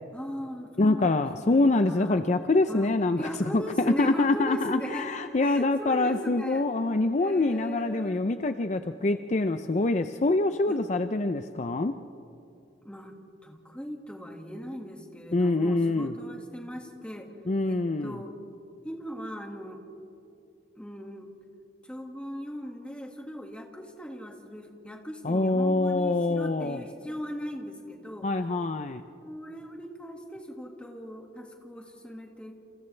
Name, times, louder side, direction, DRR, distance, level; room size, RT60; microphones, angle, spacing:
voice 1, 0.1-2.2 2.7-2.9 3.2-5.1 5.4-6.7 7.2-8.3 10.7-10.8 12.8-17.3 17.6-18.4 18.8-19.8 20.8-21.3 21.8-28.4 29.2-32.5, equal, 5° left, 2 dB, 1.9 m, -39 dB
voice 2, 0.8-11.9 15.3-16.1 17.5-18.2 25.2-26.8 28.2-29.0, left 2 dB, 40° left, 9 dB, 0.5 m, -25 dB
29.0 x 28.0 x 3.3 m, 2.7 s
head